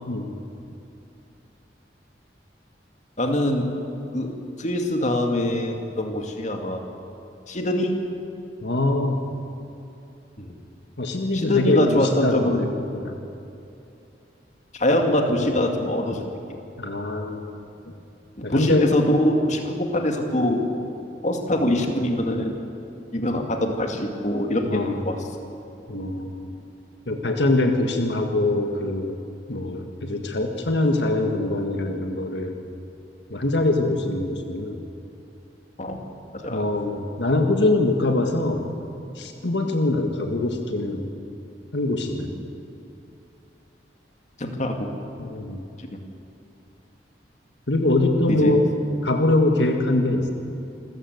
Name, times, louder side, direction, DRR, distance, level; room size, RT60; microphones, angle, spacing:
voice 1, 3.2-3.8 4.1-6.8 7.5-8.0 10.4-10.5 11.3-12.7 14.7-16.2 18.5-20.6 21.2-22.6 23.1-25.2 35.8-36.0 36.4-36.6 42.2-42.3 44.4-44.9 45.9-46.0 48.3-48.6, left 1 dB, 40° left, 3 dB, 2.2 m, -23 dB
voice 2, 8.6-9.2 11.0-13.1 16.8-17.6 18.4-18.9 24.7-25.2 25.9-26.5 27.1-29.2 29.5-32.6 33.3-34.8 36.5-38.7 39.2-41.1 41.7-42.3 45.2-45.6 47.7-48.7 49.0-50.3, left 2 dB, 80° left, 4 dB, 1.8 m, -23 dB
27.5 x 14.5 x 8.0 m, 2.8 s
head